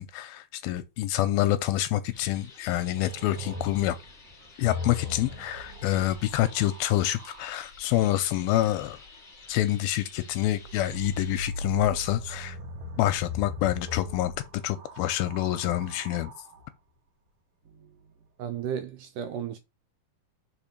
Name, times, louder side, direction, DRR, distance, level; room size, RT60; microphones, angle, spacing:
voice 1, 0.0-4.0 4.6-9.0 9.5-12.6 13.0-16.3, left 14 dB, 85° left, 2.3 m, -27 dB
sound 1, 2.1-11.4, left 4 dB, 25° left, 2.0 m, -51 dB
sound 2, 3.0-7.6 10.6-16.7 17.6-18.3, left 2 dB, 65° right, 1.6 m, -39 dB
voice 2, 18.4-19.6, right 8 dB, 85° right, 1.9 m, -33 dB
5.3 x 4.5 x 5.8 m
omnidirectional pair, 4.4 m